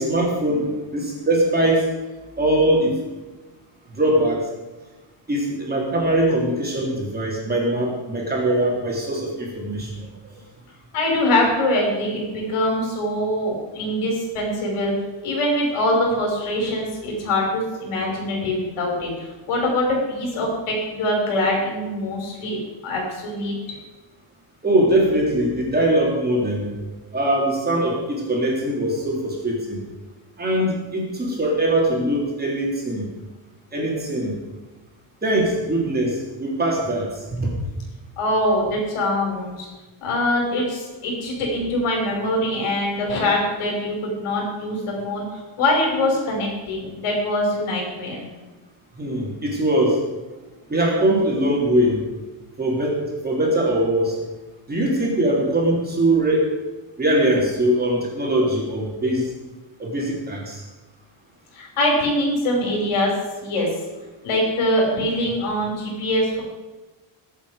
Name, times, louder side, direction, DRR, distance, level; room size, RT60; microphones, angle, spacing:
voice 1, 0.0-1.9 2.4-2.9 3.9-4.4 5.3-10.1 24.6-26.7 27.1-29.8 30.4-33.0 33.7-34.3 35.2-37.5 49.0-50.0 50.7-52.0 52.6-54.2 54.7-56.5 57.0-59.2 59.8-60.6, right 1 dB, 20° right, -3 dB, 3.5 m, -21 dB
voice 2, 10.9-14.9 15.2-22.6 22.8-23.5 38.2-39.7 40.0-48.3 61.5-63.1 63.4-63.7 64.2-66.4, left 1 dB, 80° left, 0 dB, 5.9 m, -23 dB
22.0 x 8.4 x 5.1 m, 1.2 s
cardioid pair, 170°, 50 cm